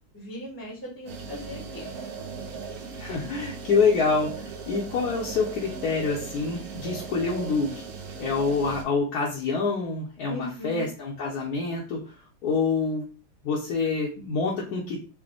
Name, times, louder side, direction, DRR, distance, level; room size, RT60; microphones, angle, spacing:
voice 1, 0.1-2.4 10.3-10.9, equal, 10° left, -2 dB, 0.6 m, -39 dB
sound 1, 1.1-8.8, right 5 dB, 65° right, 0.9 m, -38 dB
voice 2, 3.0-7.9 8.2-12.2 12.4-13.1 13.4-15.0, left 4 dB, 60° left, -3 dB, 1.0 m, -26 dB
4.9 x 2.1 x 3.4 m, 0.34 s
omnidirectional pair, 2.3 m